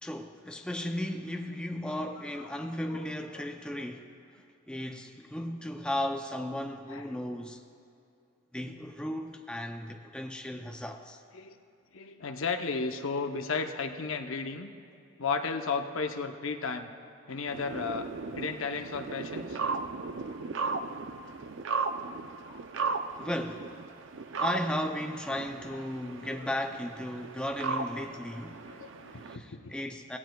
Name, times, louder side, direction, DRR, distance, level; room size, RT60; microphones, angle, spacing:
voice 1, 0.0-4.1 4.7-7.6 8.5-11.2 20.6-20.7 23.2-23.7 24.4-28.6 29.2-30.2, left 1 dB, 5° left, 0.4 m, -35 dB
voice 2, 11.9-14.7 15.2-16.9 17.3-18.1 18.4-19.6 22.5-22.6 26.2-26.5 27.4-27.5 27.9-28.0 28.7-29.7, left 4 dB, 70° left, 0.7 m, -34 dB
sound 1, 17.5-29.4, right 4 dB, 60° right, 0.5 m, -36 dB
18.0 x 17.0 x 2.3 m
head